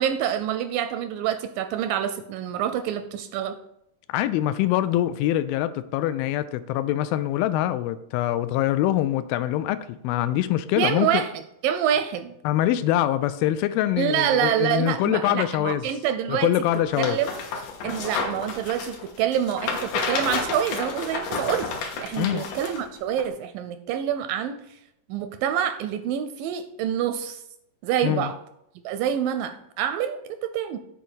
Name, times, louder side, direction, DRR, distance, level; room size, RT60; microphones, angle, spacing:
voice 1, 0.0-3.6 10.8-11.3 11.6-12.3 14.0-16.5 17.0-17.3 17.8-21.7 22.0-24.7 25.1-27.4 27.8-28.4 28.9-30.8, right 9 dB, 80° right, 9 dB, 2.0 m, -26 dB
voice 2, 4.1-11.2 12.5-15.9 16.3-17.2 22.2-22.4 28.0-28.3, left 13 dB, 85° left, 13 dB, 2.3 m, -24 dB
sound 1, 16.7-22.8 23.2-23.3, left 4 dB, 65° left, 2.5 m, -31 dB
7.6 x 4.7 x 7.0 m, 0.79 s
omnidirectional pair, 4.3 m